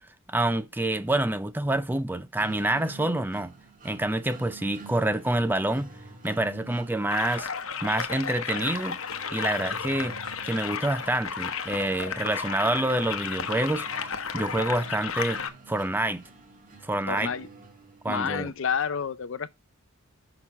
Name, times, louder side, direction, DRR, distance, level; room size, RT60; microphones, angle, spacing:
voice 1, 0.3-3.5 3.8-5.9 6.2-7.5 7.8-9.0 9.3-10.2 10.4-15.4 15.7-16.2 16.8-17.3 18.0-18.5, right 1 dB, 10° right, 0.5 m, -27 dB
sound 1, 2.4-18.3, right 4 dB, 40° right, 1.5 m, -48 dB
sound 2, 7.1-15.5, left 6 dB, 80° left, 1.0 m, -33 dB
voice 2, 17.1-17.5 18.1-19.5, left 6 dB, 60° left, 0.5 m, -29 dB
6.3 x 5.9 x 5.5 m
head